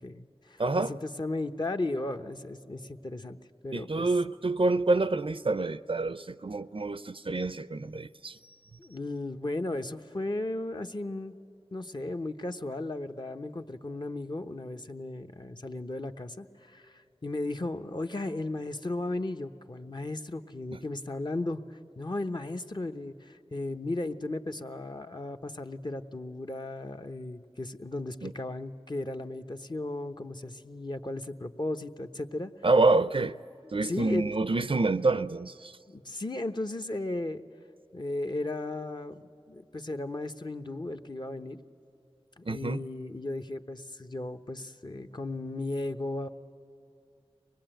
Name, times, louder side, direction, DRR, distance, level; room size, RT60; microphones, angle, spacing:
voice 1, 0.0-3.4 3.6-4.1 8.8-11.3 11.7-21.6 22.0-32.5 33.6-34.3 35.9-37.4 37.9-41.6 42.4-46.3, left 2 dB, 45° left, 0.9 m, -35 dB
voice 2, 0.6-0.9 3.7-8.3 28.2-28.3 32.6-33.4 33.7-35.7 42.5-42.8, right 3 dB, 55° right, 0.5 m, -27 dB
24.0 x 20.0 x 9.0 m
wide cardioid pair, 45°, 11 cm